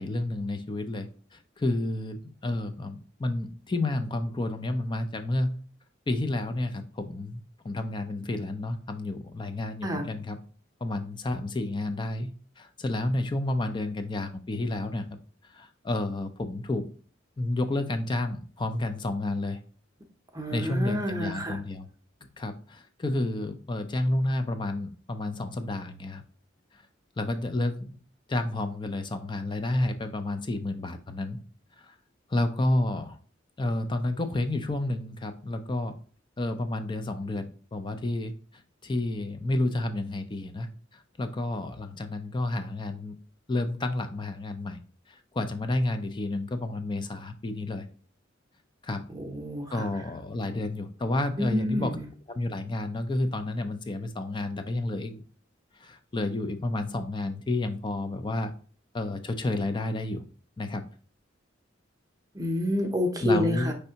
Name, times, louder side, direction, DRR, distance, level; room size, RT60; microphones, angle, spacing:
voice 1, 0.0-5.6 6.1-10.4 10.8-15.1 15.4-16.9 17.4-19.6 20.5-21.9 22.4-26.2 26.7-26.8 27.2-28.0 28.3-31.4 31.8-31.9 32.3-33.2 33.6-35.9 36.4-43.2 43.5-44.8 45.1-47.9 48.8-49.1 49.7-52.0 52.3-55.2 55.7-58.5 58.9-60.2 60.6-60.9 63.2-63.7, left 2 dB, 25° left, 8 dB, 0.4 m, -30 dB
voice 2, 20.3-21.6 49.1-49.8 51.4-52.0 62.3-63.7, left 1 dB, 20° right, 3 dB, 0.7 m, -28 dB
5.3 x 3.3 x 2.8 m, 0.42 s
head